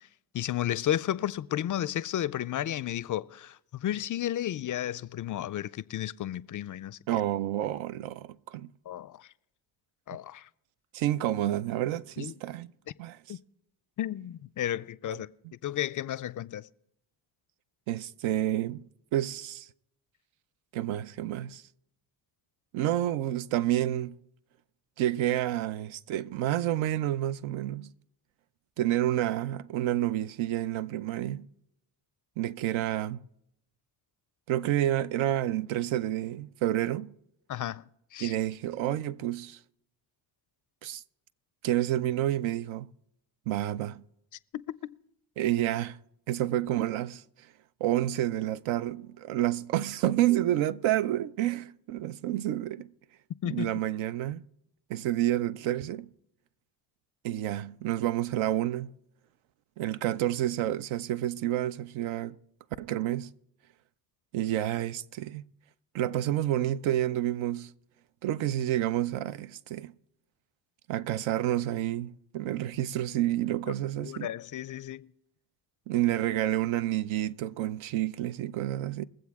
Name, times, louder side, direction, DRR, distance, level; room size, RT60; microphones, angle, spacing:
voice 1, 0.3-7.2 8.9-9.3 10.1-10.5 12.2-12.3 13.3-13.4 14.0-15.3 15.6-16.7 37.5-37.8 38.1-38.4 44.5-44.9 53.4-53.7 73.9-75.1, left 12 dB, 45° left, 0.4 m, -33 dB
voice 2, 7.1-8.7 10.9-12.7 13.0-13.2 15.1-15.2 17.9-18.8 19.1-19.7 20.7-21.6 22.7-24.2 25.0-27.9 28.8-31.5 32.4-33.2 34.5-37.1 38.2-39.6 40.8-41.0 41.6-42.9 43.5-44.0 45.4-46.0 46.3-47.2 47.8-52.9 53.4-54.4 54.9-56.1 57.2-58.9 59.8-62.4 62.8-63.3 64.3-65.4 65.9-67.7 68.2-69.9 70.9-74.3 75.9-79.1, right 13 dB, 75° right, 0.6 m, -29 dB
22.5 x 7.6 x 3.5 m
supercardioid pair, 60°, 48 cm